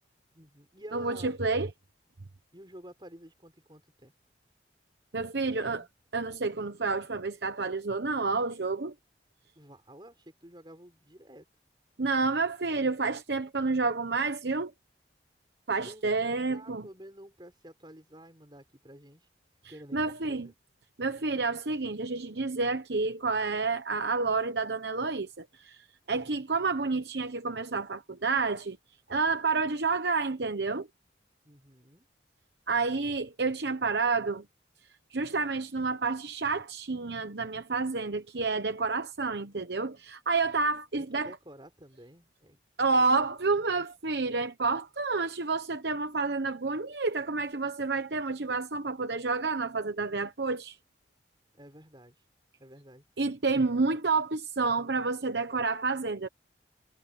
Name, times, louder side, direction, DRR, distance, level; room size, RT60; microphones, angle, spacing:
voice 1, 0.3-1.4 2.5-4.1 5.5-5.9 9.5-11.5 15.8-19.3 19.7-20.5 26.2-26.4 31.4-32.1 41.0-42.6 43.0-43.1 43.5-43.7 51.5-52.3 52.6-53.0, equal, 25° right, 6.2 m, -51 dB
voice 2, 0.9-1.7 5.1-5.8 6.1-8.9 12.0-14.7 15.7-16.8 19.9-20.5 21.0-28.8 29.1-30.9 32.7-34.4 35.1-41.3 42.8-50.8 53.2-56.3, right 4 dB, 70° right, 1.0 m, -29 dB
head